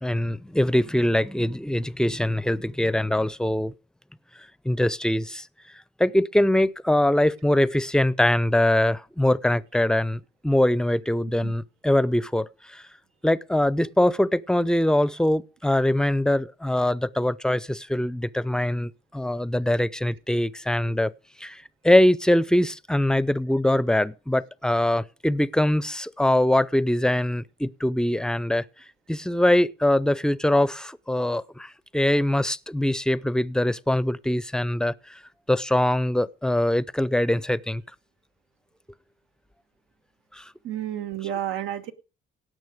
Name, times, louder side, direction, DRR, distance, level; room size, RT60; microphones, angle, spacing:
voice 1, 0.0-3.7 4.6-5.5 6.0-12.8 13.2-21.1 21.4-28.6 29.1-35.2 35.5-37.8 40.3-40.5, left 1 dB, 5° left, 0.6 m, -23 dB
voice 2, 40.6-41.9, right 11 dB, 85° right, 1.4 m, -30 dB
17.5 x 6.4 x 5.0 m
cardioid pair, 90°, 20 cm